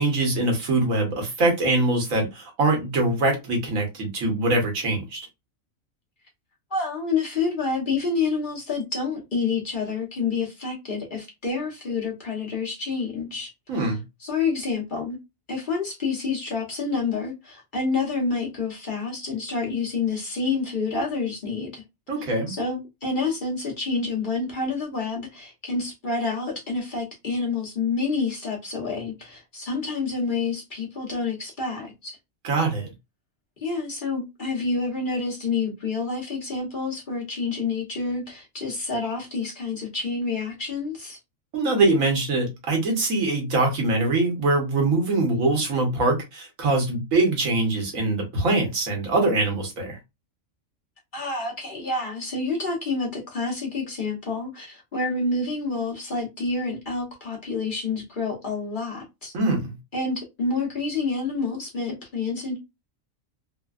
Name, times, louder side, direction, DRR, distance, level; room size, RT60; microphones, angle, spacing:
voice 1, 0.0-5.2 13.7-14.0 22.1-22.5 32.4-32.9 41.5-50.0 59.3-59.7, right 2 dB, 80° right, 1.4 m, -23 dB
voice 2, 6.7-13.9 14.2-15.2 15.5-21.8 22.5-32.2 33.6-41.2 51.1-59.3 59.9-62.6, left 4 dB, 45° left, 0.9 m, -28 dB
3.3 x 2.1 x 2.3 m
omnidirectional pair, 1.4 m